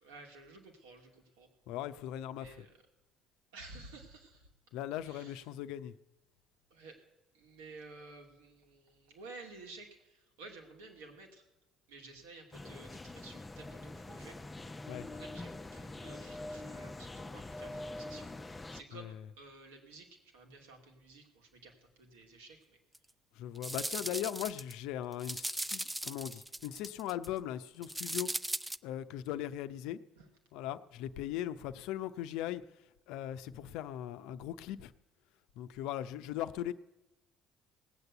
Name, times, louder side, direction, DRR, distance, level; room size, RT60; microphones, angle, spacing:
voice 1, 0.0-1.5 2.4-2.7 3.5-4.5 5.0-5.4 6.7-7.0 7.3-11.4 11.9-14.4 15.1-20.1 20.3-22.8 30.2-30.3, right 3 dB, 85° right, 2 dB, 2.4 m, -53 dB
voice 2, 1.7-2.7 4.7-5.9 14.9-15.1 18.9-19.2 23.3-28.3 28.8-30.0 30.5-32.6 33.1-34.9 35.6-36.7, left 12 dB, 75° left, 11 dB, 0.7 m, -39 dB
sound 1, 12.5-18.8, left 2 dB, 20° left, 0.8 m, -44 dB
sound 2, 22.9-23.0 23.6-24.7 25.1-27.3 27.8-28.8, right 1 dB, 10° right, 0.5 m, -38 dB
18.0 x 8.1 x 8.0 m, 0.95 s
hypercardioid pair, 60°, 0 cm